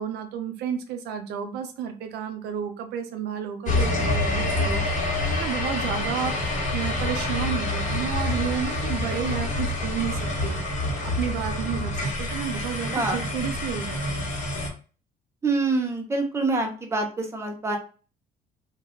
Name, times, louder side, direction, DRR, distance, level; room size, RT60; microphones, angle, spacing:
voice 1, 0.0-11.9 12.2-14.3, right 8 dB, 75° right, 6 dB, 0.5 m, -32 dB
sound 1, 3.6-14.7, left 2 dB, 50° left, 1.0 m, -27 dB
voice 2, 12.9-13.2 15.4-17.8, right 3 dB, 15° right, 2 dB, 0.6 m, -26 dB
2.3 x 2.1 x 3.4 m, 0.37 s
cardioid pair, 110°, 17 cm